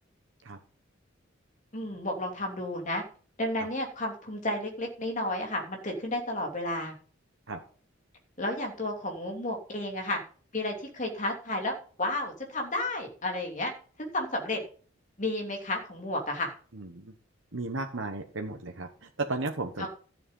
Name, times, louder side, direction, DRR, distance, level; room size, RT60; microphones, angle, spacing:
voice 1, 1.7-3.0 3.4-6.9 8.4-10.2 10.5-11.7 12.0-13.7 14.0-14.6 15.2-16.5 19.8-19.9, left 1 dB, 40° left, 1 dB, 3.1 m, -32 dB
voice 2, 16.7-17.1 17.5-19.9, right 3 dB, 65° right, 3 dB, 1.2 m, -34 dB
13.0 x 7.7 x 5.5 m, 0.42 s
head